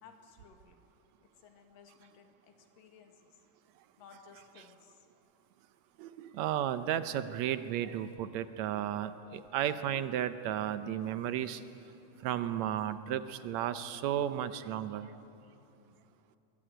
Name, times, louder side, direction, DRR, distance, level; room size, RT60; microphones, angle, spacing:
voice 1, 0.0-0.8 1.4-3.3 4.0-5.0, left 5 dB, 80° left, 4 dB, 3.4 m, -57 dB
voice 2, 6.0-11.6 12.2-15.1, right 10 dB, 75° right, 11 dB, 1.7 m, -34 dB
22.5 x 22.0 x 9.1 m, 2.9 s
omnidirectional pair, 3.9 m